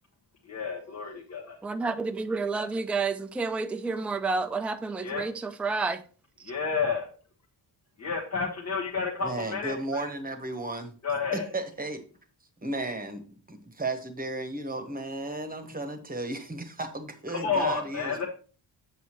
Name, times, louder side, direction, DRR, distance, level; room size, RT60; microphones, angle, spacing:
voice 1, 0.5-1.6 5.0-5.2 6.5-7.1 8.0-10.1 11.0-11.5 17.3-18.3, left 5 dB, 40° left, 1.2 m, -30 dB
voice 2, 1.6-6.0, right 4 dB, 5° right, 0.4 m, -30 dB
voice 3, 9.2-10.9 11.3-12.0 12.6-18.3, right 2 dB, 20° right, 1.1 m, -34 dB
8.0 x 6.3 x 3.0 m
wide cardioid pair, 135°, 43 cm